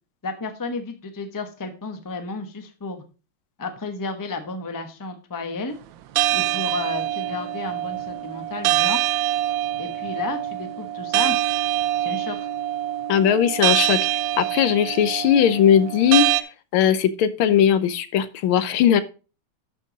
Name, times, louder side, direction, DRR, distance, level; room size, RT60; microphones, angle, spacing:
voice 1, 0.2-3.0 3.6-5.7 6.3-9.0 9.8-11.4 12.0-12.5, left 3 dB, 20° left, 6 dB, 0.5 m, -32 dB
sound 1, 6.2-16.4, right 13 dB, 75° right, 1.3 m, -24 dB
voice 2, 13.1-16.3 16.7-19.0, left 9 dB, 90° left, 13 dB, 1.6 m, -19 dB
12.0 x 4.6 x 4.0 m, 0.34 s
omnidirectional pair, 2.2 m